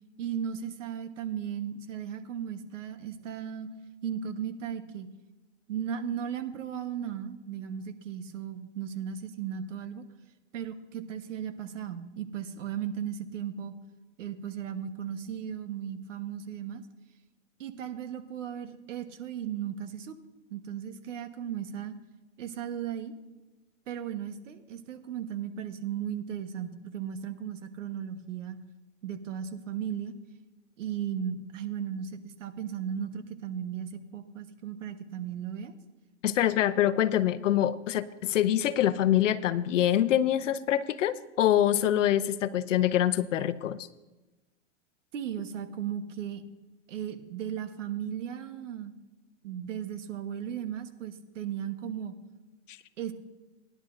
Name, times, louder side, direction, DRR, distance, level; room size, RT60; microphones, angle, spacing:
voice 1, 0.2-3.7 4.0-5.1 5.7-10.0 10.5-13.7 14.2-16.8 17.6-20.1 20.5-21.9 22.4-23.1 23.9-28.6 29.0-30.1 30.8-35.7 45.1-46.4 46.9-48.9 49.4-52.1 53.0-53.1, right 9 dB, 80° right, 8 dB, 1.3 m, -36 dB
voice 2, 36.2-43.9, left 11 dB, 80° left, 13 dB, 0.8 m, -25 dB
18.5 x 11.0 x 2.6 m, 1.1 s
hypercardioid pair, 125°, 37 cm